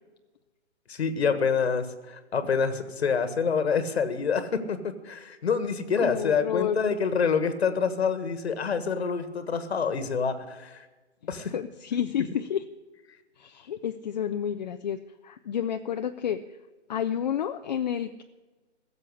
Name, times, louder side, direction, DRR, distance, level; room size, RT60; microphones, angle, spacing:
voice 1, 0.9-10.8 11.3-11.5, left 6 dB, 65° left, 11 dB, 1.6 m, -27 dB
voice 2, 6.0-6.8 11.5-12.6 13.4-15.0 15.2-16.4 16.9-18.2, left 9 dB, 40° left, 7 dB, 0.6 m, -30 dB
15.0 x 7.5 x 9.9 m, 1.2 s
hypercardioid pair, 145°, 35 cm